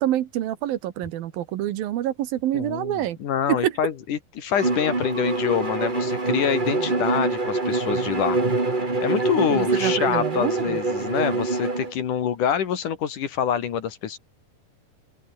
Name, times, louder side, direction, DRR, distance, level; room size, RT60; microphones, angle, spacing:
voice 1, 0.0-3.2 3.5-3.7 9.5-10.8, right 13 dB, 70° right, 2.9 m, -26 dB
voice 2, 2.5-8.4 9.0-14.2, left 8 dB, 60° left, 3.2 m, -26 dB
Bowed string instrument, 4.5-11.9, right 2 dB, 15° right, 1.8 m, -25 dB
open air
omnidirectional pair, 4.4 m